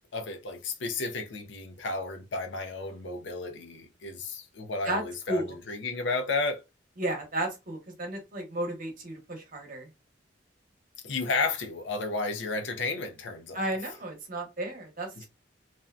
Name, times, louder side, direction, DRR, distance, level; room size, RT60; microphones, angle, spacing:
voice 1, 0.1-6.6 11.0-13.7 15.2-15.3, left 3 dB, 70° left, 0.5 m, -32 dB
voice 2, 7.0-9.9 13.5-15.3, right 1 dB, 45° right, 0.9 m, -33 dB
2.6 x 2.2 x 2.3 m
head